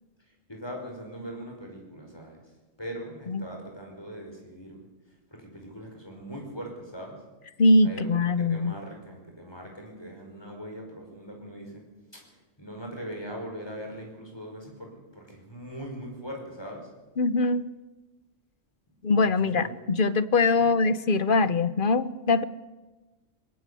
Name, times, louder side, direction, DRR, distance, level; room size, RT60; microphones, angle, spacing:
voice 1, 0.5-2.4 2.8-4.8 5.3-7.2 7.8-11.8 12.1-12.3 12.6-16.9 19.3-19.7 20.5-20.7, equal, 20° left, 1 dB, 5.3 m, -41 dB
voice 2, 7.6-8.7 17.2-17.6 19.0-22.4, left 3 dB, 50° left, 15 dB, 0.9 m, -22 dB
22.0 x 17.0 x 8.3 m, 1.2 s
omnidirectional pair, 1.3 m